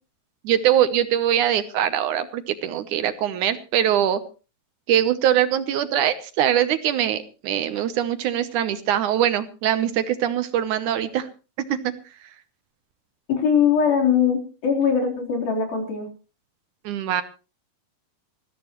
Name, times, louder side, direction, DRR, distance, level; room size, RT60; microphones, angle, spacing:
voice 1, 0.4-4.2 4.9-11.3 11.7-11.9 16.9-17.2, right 10 dB, 70° right, 11 dB, 2.1 m, -22 dB
voice 2, 13.3-16.1, left 7 dB, 90° left, 0 dB, 5.7 m, -21 dB
20.5 x 15.0 x 3.1 m, 0.34 s
omnidirectional pair, 4.1 m